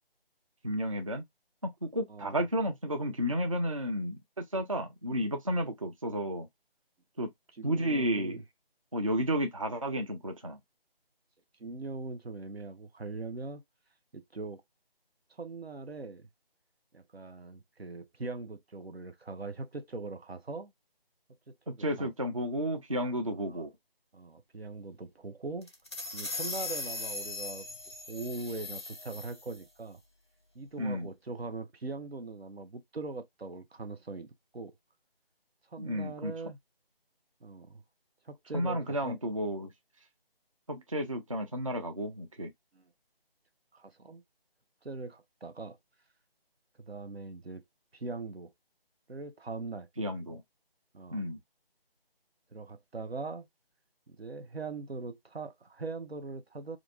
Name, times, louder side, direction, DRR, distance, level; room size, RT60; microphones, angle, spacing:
voice 1, 0.6-1.2 1.8-6.5 7.2-7.3 7.6-8.4 8.9-10.6 21.7-23.7 30.8-31.1 35.8-36.3 38.5-39.7 40.7-42.5 50.0-50.4 51.1-51.4, equal, 35° right, 0.4 m, -32 dB
voice 2, 2.1-2.4 7.6-8.4 11.6-13.6 14.1-14.6 15.3-16.3 16.9-20.7 21.5-22.1 23.3-23.6 24.1-25.7 26.1-27.7 28.1-30.0 30.5-34.7 35.7-36.6 37.4-37.8 38.3-39.2 42.7-42.8 43.7-44.2 44.8-45.8 46.8-47.6 47.9-48.5 49.1-49.9 50.9-51.3 52.5-53.5 54.1-56.8, right 3 dB, 90° right, 0.7 m, -41 dB
sound 1, 25.6-29.6, left 3 dB, 30° left, 0.5 m, -39 dB
3.0 x 2.5 x 2.2 m
figure-of-eight pair, 155°, 30 cm